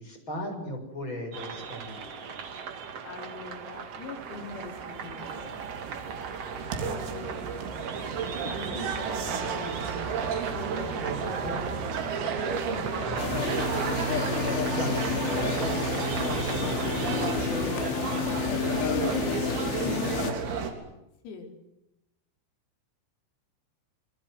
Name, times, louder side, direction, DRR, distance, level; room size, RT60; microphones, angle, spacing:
voice 1, 0.0-2.4 6.5-6.9 8.5-9.4 11.0-11.1 11.4-11.6 12.7-19.0 19.6-20.4, left 1 dB, 20° left, 5 dB, 7.4 m, -39 dB
sound 1, 1.3-17.4, right 6 dB, 55° right, 1.7 m, -38 dB
voice 2, 3.1-5.6 6.9-7.7 8.4-9.8 10.5-12.0 12.4-13.3 19.8-20.2 21.2-21.5, left 4 dB, 85° left, 4 dB, 7.0 m, -42 dB
sound 2, 4.2-20.7, right 6 dB, 80° right, 6.1 m, -33 dB
sound 3, 13.2-20.3, left 7 dB, 65° left, 5.0 m, -30 dB
27.0 x 24.0 x 8.1 m, 0.89 s
omnidirectional pair, 6.0 m